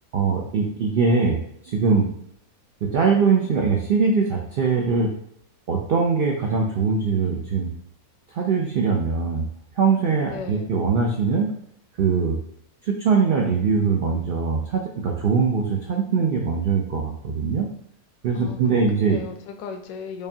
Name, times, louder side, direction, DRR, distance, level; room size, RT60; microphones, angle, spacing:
voice 1, 0.1-1.4 1.6-2.1 2.8-5.1 5.7-7.7 8.3-9.5 9.8-11.5 12.0-12.4 12.8-17.7 18.2-19.2, right 5 dB, 80° right, 0 dB, 0.5 m, -22 dB
voice 2, 10.3-10.7 18.3-20.3, left 5 dB, 75° left, 6 dB, 0.9 m, -36 dB
4.9 x 2.2 x 2.7 m, 0.68 s
omnidirectional pair, 1.5 m